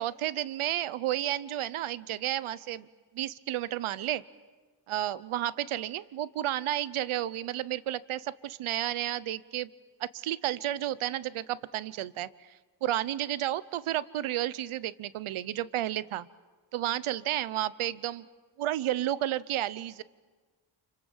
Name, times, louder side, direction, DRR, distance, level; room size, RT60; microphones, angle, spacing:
voice 1, 0.0-2.9 3.1-4.2 4.9-9.7 10.0-12.5 12.8-16.3 16.7-18.3 18.6-20.0, right 13 dB, 85° right, 19 dB, 0.9 m, -32 dB
29.0 x 26.0 x 7.3 m, 1.3 s
cardioid pair, 55°, 48 cm